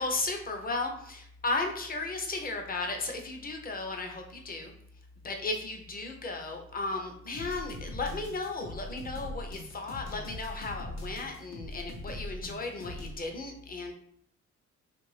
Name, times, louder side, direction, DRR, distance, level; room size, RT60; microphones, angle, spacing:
voice 1, 0.0-4.7 5.2-13.9, left 3 dB, 30° left, 3 dB, 0.6 m, -35 dB
sound 1, 7.3-13.2, left 1 dB, 65° left, 0.8 m, -41 dB
3.0 x 2.5 x 3.2 m, 0.66 s
cardioid pair, 90°, 30 cm